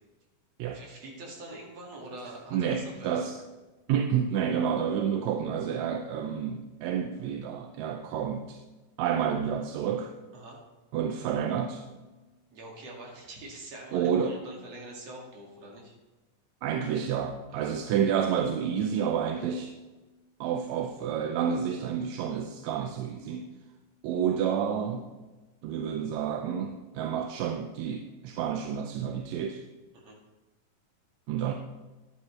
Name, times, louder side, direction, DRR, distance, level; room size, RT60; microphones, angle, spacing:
voice 1, 0.7-3.3 10.3-10.6 12.5-16.0 17.5-17.7 29.9-30.2, right 1 dB, 55° right, -1 dB, 3.2 m, -44 dB
voice 2, 2.5-3.4 3.9-8.6 9.0-10.1 10.9-11.8 13.9-14.4 16.6-19.7 20.4-23.5 24.0-25.1 25.6-29.6 31.3-31.5, right 8 dB, 75° right, 5 dB, 1.8 m, -29 dB
13.0 x 10.5 x 3.2 m, 1.2 s
omnidirectional pair, 3.5 m